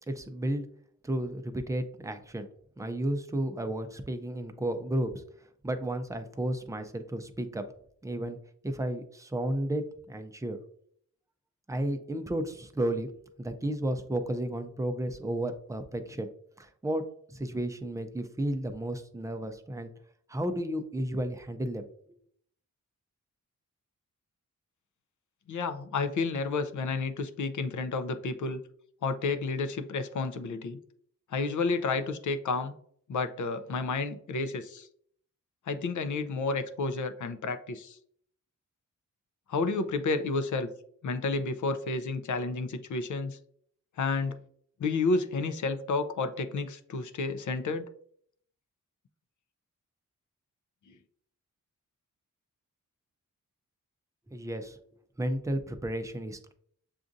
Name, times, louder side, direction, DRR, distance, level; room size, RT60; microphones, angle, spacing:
voice 1, 0.1-0.7 1.0-2.5 2.8-5.1 5.6-7.6 8.0-8.4 8.6-10.6 11.7-13.1 13.4-16.3 16.6-17.0 17.3-19.9 20.3-21.8 54.3-54.8 55.2-56.5, right 1 dB, 10° right, 7 dB, 0.5 m, -32 dB
voice 2, 25.5-28.6 29.0-30.8 31.3-32.7 33.1-34.9 35.7-38.0 39.5-40.7 41.0-43.4 44.0-44.4 44.8-47.8, left 3 dB, 65° left, 10 dB, 0.5 m, -31 dB
7.0 x 2.5 x 2.6 m, 0.63 s
wide cardioid pair, 90°, 32 cm